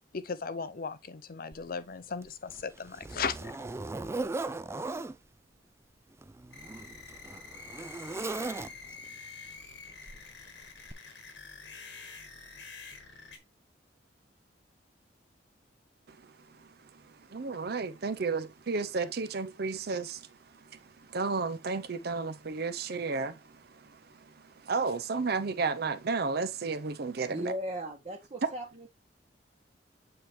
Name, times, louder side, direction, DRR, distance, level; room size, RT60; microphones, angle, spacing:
voice 1, 0.1-3.5, left 5 dB, 55° left, 0.6 m, -36 dB
Zipper (clothing), 1.5-1.6 2.2-5.2 6.1-9.1 10.1-10.3 10.9-11.0, right 3 dB, 15° right, 0.3 m, -38 dB
sound 1, 6.5-13.4, left 4 dB, 85° left, 1.7 m, -47 dB
voice 2, 17.3-20.3 20.7-20.8 21.1-23.4 23.8-23.9 24.2-24.3 24.6-27.4, right 4 dB, 60° right, 0.7 m, -32 dB
voice 3, 27.3-28.9, equal, 35° right, 1.1 m, -37 dB
7.7 x 4.3 x 3.2 m
head